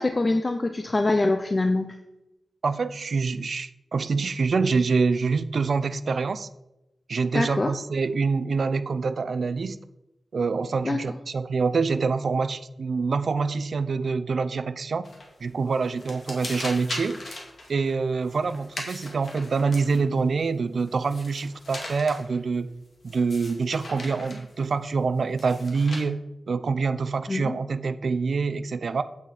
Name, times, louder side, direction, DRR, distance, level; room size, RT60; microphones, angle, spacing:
voice 1, 0.0-2.0 7.3-7.7 10.8-11.0 27.3-27.6, left 2 dB, 30° left, 7 dB, 0.6 m, -24 dB
voice 2, 2.6-6.5 7.1-9.8 10.3-15.1 15.4-17.2 17.7-22.7 23.0-26.2 26.5-29.0, right 4 dB, 65° right, 13 dB, 0.5 m, -26 dB
sound 1, 15.0-15.4 15.7-20.2 20.8-22.4 23.0-24.5 25.4-26.0, left 2 dB, 55° left, 2.4 m, -39 dB
8.7 x 8.1 x 4.2 m, 0.92 s
wide cardioid pair, 95°, 0 cm